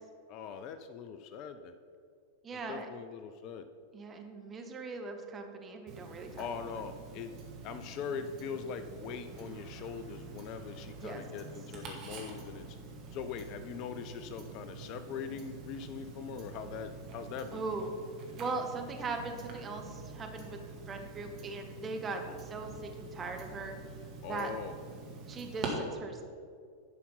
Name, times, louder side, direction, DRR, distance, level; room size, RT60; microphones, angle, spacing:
voice 1, 0.3-1.7 2.5-3.7 6.4-7.4 7.6-12.8 13.1-17.6 22.1-22.4 24.2-24.8, left 6 dB, 40° left, 10 dB, 0.5 m, -41 dB
voice 2, 2.4-2.9 3.9-6.5 11.0-11.2 17.5-17.9 18.4-20.6 20.9-23.8 24.3-24.5 25.3-26.2, right 3 dB, 20° right, 3 dB, 1.1 m, -39 dB
Tick-tock, 5.9-25.7, right 5 dB, 35° right, 1.9 m, -47 dB
11.0 x 5.8 x 5.6 m, 2.3 s
figure-of-eight pair, 90°, 0 cm